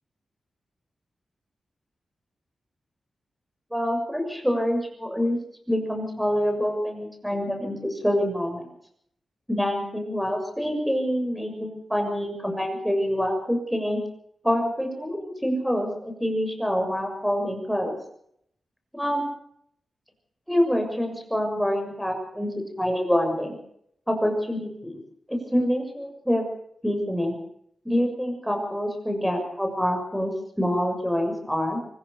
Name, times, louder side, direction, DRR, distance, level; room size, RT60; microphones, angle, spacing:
voice 1, 3.7-5.4 5.7-8.7 9.5-14.0 14.4-18.0 18.9-19.2 20.5-23.6 24.1-25.0 25.3-26.4 26.8-27.4 27.8-31.8, equal, ahead, 4 dB, 6.6 m, -26 dB
24.5 x 15.0 x 6.9 m, 0.70 s
wide cardioid pair, 95°, 0 cm